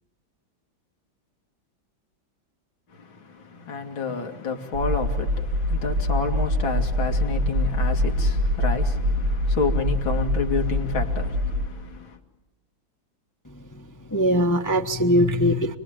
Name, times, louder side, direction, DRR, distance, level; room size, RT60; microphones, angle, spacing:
voice 1, 2.9-12.2, left 4 dB, 90° left, 3.2 m, -30 dB
sound 1, 4.7-11.7, left 1 dB, 75° right, 2.4 m, -24 dB
voice 2, 13.4-15.8, equal, 15° left, 0.8 m, -22 dB
29.5 x 22.0 x 8.9 m
omnidirectional pair, 2.1 m